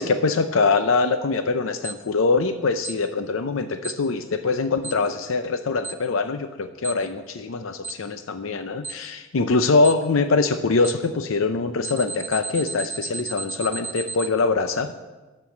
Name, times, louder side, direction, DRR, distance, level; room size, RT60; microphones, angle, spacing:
voice 1, 0.0-15.0, left 3 dB, 80° left, 9 dB, 0.6 m, -23 dB
Alarm, 1.8-1.9 2.8-2.9 3.8-3.9 4.8-4.9 5.8-5.9 6.8-6.9 7.8-7.9 8.8-8.9 9.8-9.9 10.8-10.9 11.8-14.3, right 4 dB, 10° right, 0.7 m, -32 dB
11.5 x 6.8 x 7.1 m, 1.2 s
head